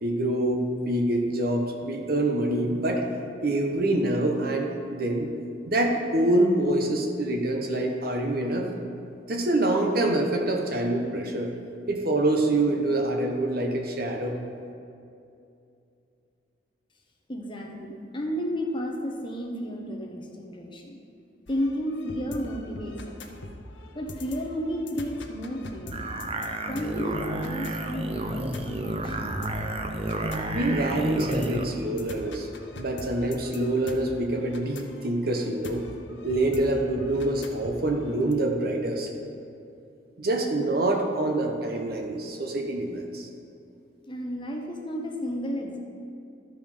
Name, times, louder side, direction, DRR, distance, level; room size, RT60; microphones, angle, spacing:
voice 1, 0.0-3.1 3.4-5.3 5.7-8.7 9.3-11.5 11.9-14.4 30.5-32.5 32.7-35.9 36.2-39.1 40.2-43.3, right 1 dB, 55° right, 2 dB, 1.0 m, -26 dB
voice 2, 17.3-21.0 21.5-23.2 23.9-26.0 26.7-29.4 44.0-45.8, equal, 25° left, 1 dB, 1.0 m, -32 dB
sound 1, 21.5-38.3, left 1 dB, 85° left, 0.9 m, -42 dB
sound 2, 25.9-31.7, right 1 dB, 30° right, 0.6 m, -31 dB
13.0 x 5.1 x 5.4 m, 2.6 s
head